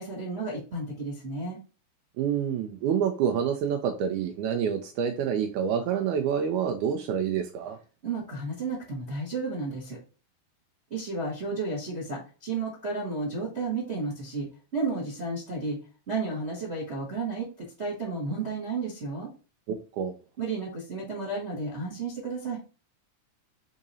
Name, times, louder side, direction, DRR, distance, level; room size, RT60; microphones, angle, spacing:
voice 1, 0.0-1.6 8.0-10.0 10.9-14.5 14.7-15.8 16.1-17.5 17.8-19.3 20.4-22.6, right 3 dB, 70° right, -6 dB, 0.6 m, -32 dB
voice 2, 2.2-7.8 19.7-20.1, right 8 dB, 90° right, 5 dB, 1.7 m, -27 dB
4.9 x 3.7 x 2.7 m, 0.35 s
omnidirectional pair, 4.1 m